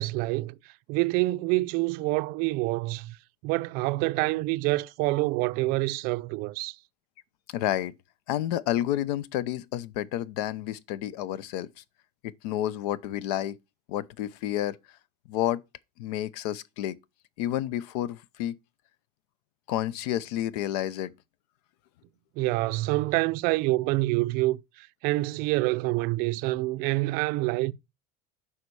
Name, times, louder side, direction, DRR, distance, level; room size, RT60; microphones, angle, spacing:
voice 1, 0.0-3.2 3.4-6.8 22.4-27.8, right 21 dB, 50° right, 0.4 m, -27 dB
voice 2, 7.5-7.9 8.3-11.8 12.2-13.6 13.9-14.8 15.3-15.6 16.0-17.0 17.4-18.6 19.7-21.1, left 12 dB, 75° left, 0.7 m, -30 dB
9.5 x 5.7 x 4.7 m
cardioid pair, 165°, 20 cm